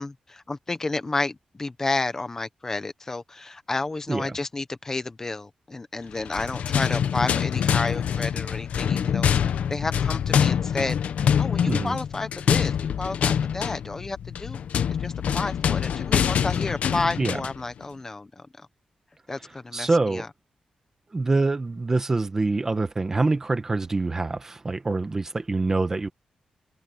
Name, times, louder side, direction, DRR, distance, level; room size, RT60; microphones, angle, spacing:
voice 1, 0.0-9.3 9.7-11.0 11.4-14.6 14.9-18.4 19.3-20.3, left 3 dB, 20° left, 1.1 m, -31 dB
sound 1, 6.2-17.6, left 8 dB, 80° left, 1.1 m, -25 dB
voice 2, 11.6-12.0 17.2-17.4 19.7-20.3 21.1-26.1, right 3 dB, 20° right, 1.3 m, -25 dB
wide cardioid pair, 175°, 2 cm